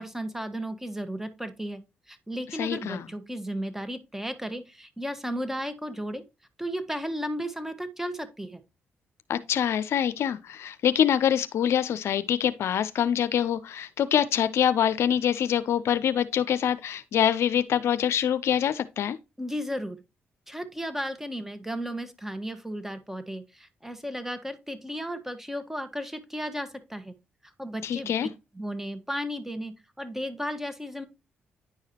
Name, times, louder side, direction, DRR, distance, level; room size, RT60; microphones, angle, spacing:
voice 1, 0.0-6.2 6.6-8.6 19.4-20.0 20.5-27.1 27.4-28.1 28.5-31.1, equal, 10° right, 1.3 m, -34 dB
voice 2, 2.6-3.0 9.3-19.2 27.8-28.3, left 9 dB, 75° left, 0.5 m, -25 dB
9.8 x 4.8 x 2.8 m
supercardioid pair, 55°, 5 cm